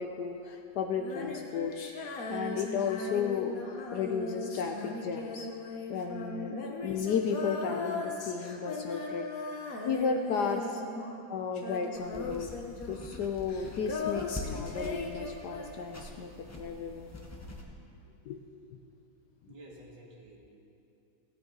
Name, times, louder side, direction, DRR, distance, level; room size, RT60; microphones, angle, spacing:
voice 1, 0.0-1.7 2.3-3.5 3.9-5.5 5.9-6.5 6.8-9.2 9.8-10.8 11.3-17.2 18.3-18.4, left 6 dB, 70° left, 4 dB, 1.1 m, -33 dB
Female singing, 0.9-11.3 11.5-16.0, left 3 dB, 50° left, 1.3 m, -38 dB
sound 1, 11.9-17.6, left 2 dB, 20° left, 0.4 m, -44 dB
voice 2, 19.4-20.4, right 2 dB, 65° right, -1 dB, 2.2 m, -51 dB
16.5 x 8.9 x 3.9 m, 2.7 s
omnidirectional pair, 2.1 m